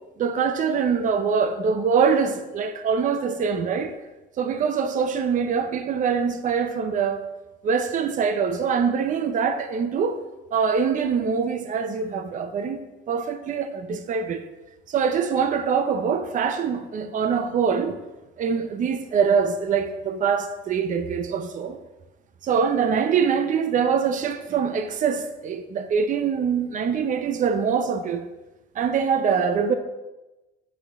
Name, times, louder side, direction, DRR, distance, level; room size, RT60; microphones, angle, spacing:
voice 1, 0.2-3.9 4.4-7.3 7.6-10.2 10.5-14.4 14.9-18.0 18.4-21.8 22.4-28.3 28.8-29.7, right 6 dB, 45° right, 0.7 m, -24 dB
7.9 x 6.2 x 3.5 m
cardioid pair, 130°, 18 cm